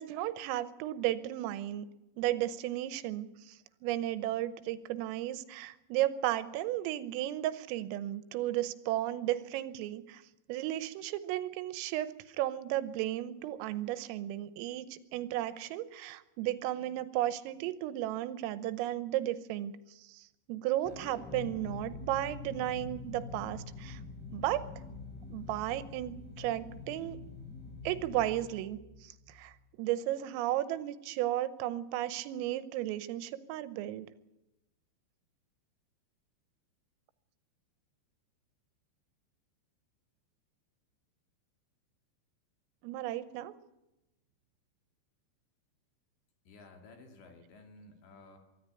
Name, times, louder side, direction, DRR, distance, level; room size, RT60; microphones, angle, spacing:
voice 1, 0.0-1.9 2.2-10.2 10.5-24.0 24.3-24.7 25.3-27.2 27.9-34.1 42.8-43.5, right 14 dB, 90° right, 13 dB, 3.6 m, -34 dB
sound 1, 20.8-29.5, left 4 dB, ahead, 2.8 m, -45 dB
voice 2, 46.5-48.4, left 3 dB, 65° left, 4 dB, 4.5 m, -54 dB
24.0 x 13.5 x 9.0 m, 0.94 s
omnidirectional pair, 5.8 m